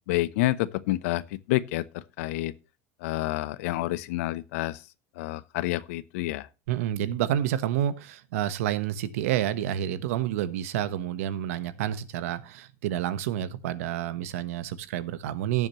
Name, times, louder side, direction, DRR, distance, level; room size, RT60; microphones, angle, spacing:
voice 1, 0.1-2.5 3.0-4.8 5.2-6.5, left 17 dB, 85° left, 0.8 m, -29 dB
voice 2, 6.7-15.7, right 11 dB, 90° right, 1.1 m, -29 dB
17.5 x 7.4 x 3.0 m
supercardioid pair, 125°, 7 cm